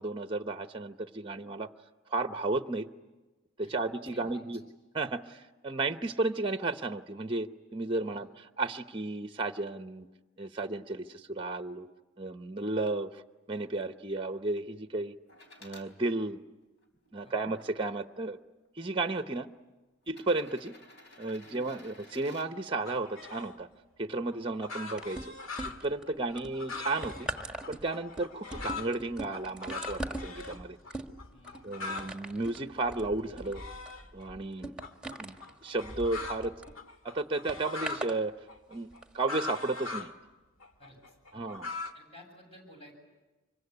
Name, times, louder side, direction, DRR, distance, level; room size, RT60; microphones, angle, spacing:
voice 1, 0.0-1.7 2.1-2.9 3.6-4.6 4.9-10.1 10.4-11.9 12.2-13.2 13.5-15.1 15.6-16.4 17.1-18.4 18.8-19.5 20.1-20.7 21.2-23.7 24.0-25.2 25.8-27.3 27.7-30.8 31.6-33.6 34.1-34.7 35.2-36.5 37.0-38.3 38.7-38.9 39.1-40.1 41.3-41.7, right 2 dB, 25° right, 8 dB, 0.8 m, -33 dB
voice 2, 3.6-4.5 8.1-8.2 17.2-17.5 21.4-22.0 31.3-31.8 40.8-41.5 41.9-42.9, equal, 30° left, 2 dB, 7.9 m, -55 dB
sound 1, 15.3-15.9 16.6-17.7 18.6-18.7 20.0-22.5 24.4-24.5, left 2 dB, 60° left, 4.3 m, -54 dB
sound 2, 22.9-23.6 24.3-28.9 29.3-30.6 30.8-30.9 31.2-32.2 32.6-34.3 34.8-38.1 38.5-40.1 40.6-41.9, left 4 dB, 80° left, 1.8 m, -41 dB
sound 3, 25.0-26.0 26.4-36.7 37.5-38.2 38.9-39.0, right 1 dB, 5° right, 1.6 m, -41 dB
25.5 x 23.5 x 9.8 m, 1.2 s
head